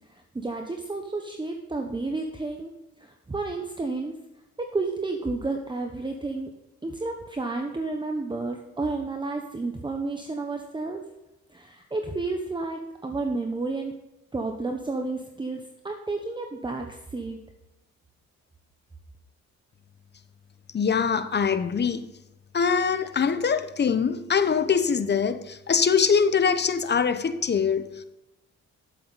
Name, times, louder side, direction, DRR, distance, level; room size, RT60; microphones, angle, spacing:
voice 1, 0.3-2.7 3.0-4.2 4.6-6.5 6.8-11.0 11.5-13.9 14.3-17.4, right 3 dB, 15° right, 1.0 m, -31 dB
voice 2, 20.7-22.0 22.5-28.0, left 6 dB, 35° left, 0.9 m, -23 dB
11.5 x 7.6 x 4.1 m
cardioid pair, 90°, 30 cm